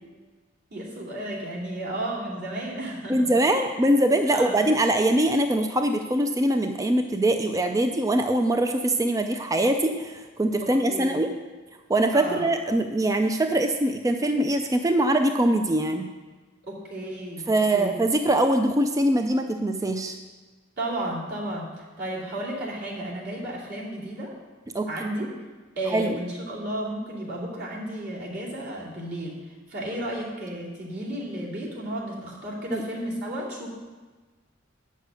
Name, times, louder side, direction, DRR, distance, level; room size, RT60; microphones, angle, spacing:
voice 1, 0.7-3.3 4.3-4.6 10.6-11.2 12.1-12.4 16.6-17.5 17.7-18.0 20.8-24.3 24.9-25.3 25.8-33.7, right 1 dB, 55° right, -5 dB, 2.8 m, -33 dB
voice 2, 3.1-11.3 11.9-16.1 17.5-20.2 24.7-25.1 25.9-26.2 32.7-32.8, right 1 dB, 15° right, 6 dB, 0.4 m, -23 dB
8.9 x 6.6 x 6.8 m, 1.3 s
head